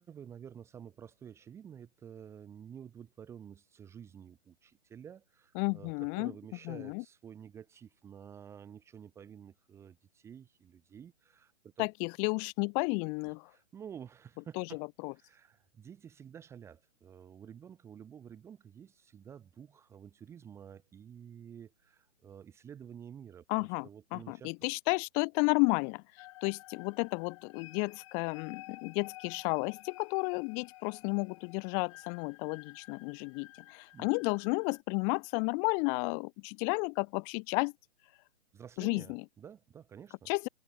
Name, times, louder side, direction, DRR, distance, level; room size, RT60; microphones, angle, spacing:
voice 1, 0.0-11.9 13.3-14.8 15.1-24.5 33.9-34.1 38.5-40.3, right 8 dB, 5° right, 1.5 m, -50 dB
voice 2, 5.6-6.3 6.7-7.0 11.8-13.4 14.6-14.7 15.0-15.1 23.5-26.0 26.4-37.7 38.8-39.2 40.3-40.5, left 39 dB, 10° left, 0.6 m, -32 dB
sound 1, 26.2-34.8, left 17 dB, 25° left, 2.3 m, -53 dB
hypercardioid pair, 160°, 35 cm